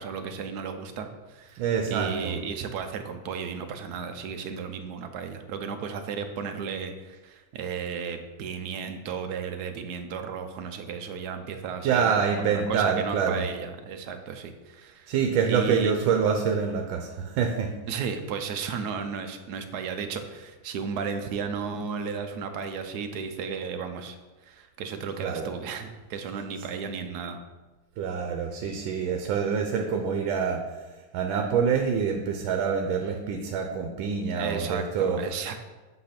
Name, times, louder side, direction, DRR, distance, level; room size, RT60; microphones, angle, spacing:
voice 1, 0.0-1.6 1.9-12.2 12.5-15.1 15.5-15.9 17.9-24.2 24.5-27.4 34.4-35.6, right 6 dB, 70° right, 7 dB, 1.0 m, -34 dB
voice 2, 1.5-2.4 11.8-13.5 15.1-17.7 25.2-25.5 28.0-35.3, right 6 dB, 90° right, 4 dB, 1.4 m, -26 dB
7.9 x 3.3 x 5.8 m, 1.2 s
omnidirectional pair, 2.1 m